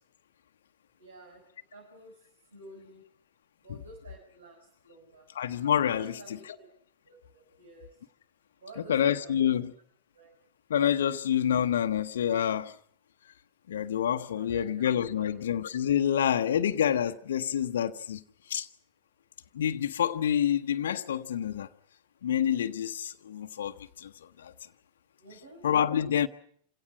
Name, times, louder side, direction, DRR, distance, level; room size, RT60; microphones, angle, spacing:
voice 1, 1.0-1.4 1.7-3.0 3.6-5.3 6.0-6.7 7.1-8.0 8.6-9.5 10.1-10.3 14.3-15.3 25.2-25.6, right 2 dB, 70° right, 6.2 m, -51 dB
voice 2, 5.3-6.4 8.9-9.7 10.7-12.7 13.7-18.2 18.5-18.7 19.5-21.7 22.2-24.1 24.4-24.5 25.6-26.3, left 9 dB, 60° left, 0.9 m, -27 dB
27.5 x 17.0 x 8.6 m
figure-of-eight pair, 90°, 0 cm